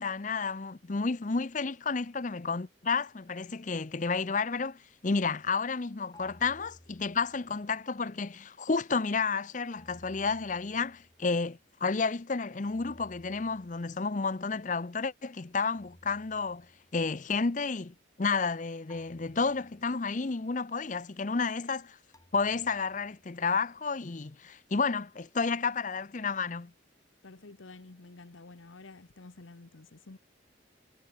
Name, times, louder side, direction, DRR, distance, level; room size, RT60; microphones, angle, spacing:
voice 1, 0.0-16.7 16.9-22.0 22.3-26.7, left 4 dB, 40° left, 0.6 m, -31 dB
sound 1, 6.1-7.9 9.7-11.5 12.6-14.4 15.7-17.2 18.9-20.2 22.1-23.4, left 1 dB, 20° left, 4.3 m, -58 dB
voice 2, 27.2-30.2, left 3 dB, 80° left, 1.1 m, -50 dB
head